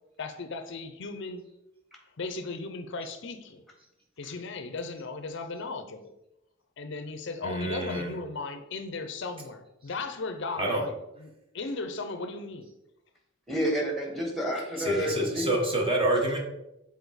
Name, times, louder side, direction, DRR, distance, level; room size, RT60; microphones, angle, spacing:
voice 1, 0.2-1.5 2.2-3.6 4.2-6.1 6.8-10.9 11.2-12.7, left 3 dB, 60° left, 8 dB, 0.6 m, -36 dB
voice 2, 7.4-8.2 10.6-10.8 14.8-16.4, right 1 dB, 25° right, 0 dB, 1.2 m, -27 dB
voice 3, 13.5-15.5, equal, ahead, 0 dB, 1.4 m, -30 dB
7.0 x 4.2 x 4.0 m, 0.88 s
head